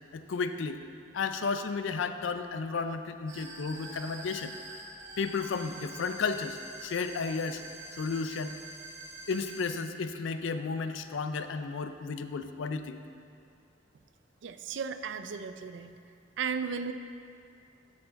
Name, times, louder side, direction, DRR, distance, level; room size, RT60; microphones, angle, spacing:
voice 1, 0.1-0.8 1.1-4.5 5.2-7.6 7.9-8.6 9.3-13.0, left 4 dB, 70° left, 9 dB, 0.4 m, -33 dB
sound 1, 3.3-9.7, right 2 dB, 85° right, 1.3 m, -46 dB
voice 2, 14.4-15.9 16.4-16.9, right 6 dB, 65° right, 10 dB, 0.4 m, -35 dB
8.3 x 4.6 x 6.4 m, 2.4 s
head